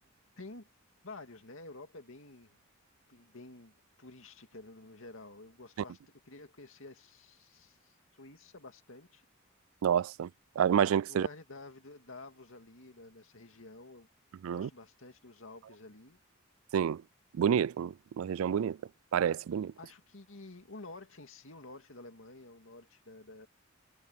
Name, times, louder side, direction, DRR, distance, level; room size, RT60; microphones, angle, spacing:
voice 1, 0.4-0.7 1.0-2.6 3.1-9.2 11.0-14.1 14.5-16.2 19.8-23.5, left 2 dB, 80° left, 2.3 m, -50 dB
voice 2, 9.8-10.3 10.6-11.3 14.4-14.7 16.7-17.0 17.3-18.8 19.1-19.7, right 8 dB, 85° right, 0.3 m, -28 dB
head